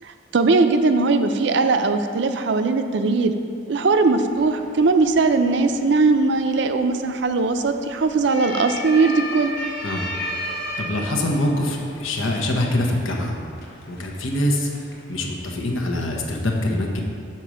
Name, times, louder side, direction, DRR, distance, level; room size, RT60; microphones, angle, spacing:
voice 1, 0.0-3.3 3.7-9.5, right 3 dB, 60° right, 8 dB, 0.4 m, -19 dB
sound 1, 4.3-15.5, left 1 dB, 55° left, 0.9 m, -35 dB
voice 2, 10.8-13.3 13.9-17.0, left 1 dB, 85° left, 1 dB, 1.0 m, -24 dB
6.7 x 4.5 x 6.2 m, 2.4 s
head